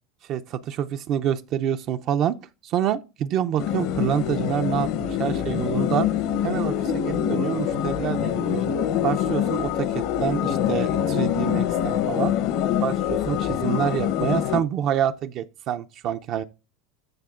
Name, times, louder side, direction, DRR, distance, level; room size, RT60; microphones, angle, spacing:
voice 1, 0.3-2.4 2.6-6.1 6.4-8.6 9.0-12.4 12.8-16.4, right 10 dB, 45° right, 0.4 m, -27 dB
sound 1, 3.6-14.6, left 10 dB, 60° left, 0.8 m, -25 dB
14.5 x 6.3 x 2.4 m
supercardioid pair, 150°, 0 cm